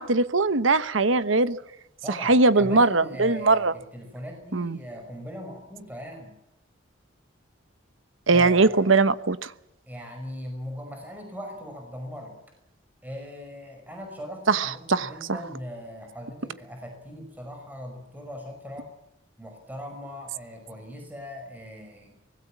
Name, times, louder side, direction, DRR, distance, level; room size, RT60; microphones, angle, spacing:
voice 1, 0.0-1.6 2.2-3.7 4.5-4.8 8.3-9.5 14.5-15.4, right 3 dB, 90° right, 1.2 m, -21 dB
voice 2, 2.0-6.3 8.3-9.0 9.9-12.3 13.0-18.9 19.4-22.1, equal, 10° right, 5.3 m, -39 dB
24.5 x 19.5 x 7.4 m
head